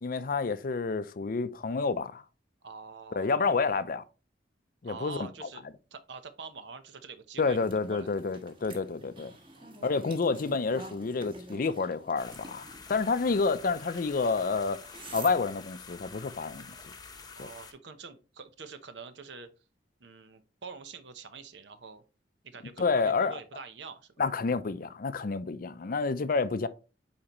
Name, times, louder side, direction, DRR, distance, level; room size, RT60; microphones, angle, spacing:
voice 1, 0.0-2.2 3.1-4.0 4.8-5.5 7.4-9.3 9.8-14.8 15.1-16.7 17.4-17.5 22.8-23.4 24.2-26.7, left 4 dB, 50° left, 0.5 m, -29 dB
voice 2, 2.6-3.5 4.8-5.6 5.9-7.6 7.9-8.4 9.5-10.2 17.3-19.5 20.0-22.0 22.4-24.1, right 5 dB, 75° right, 0.8 m, -46 dB
sound 1, 7.4-15.3, right 2 dB, 30° right, 1.4 m, -49 dB
sound 2, 12.2-17.7, left 4 dB, 20° left, 0.8 m, -48 dB
8.7 x 4.3 x 3.0 m
head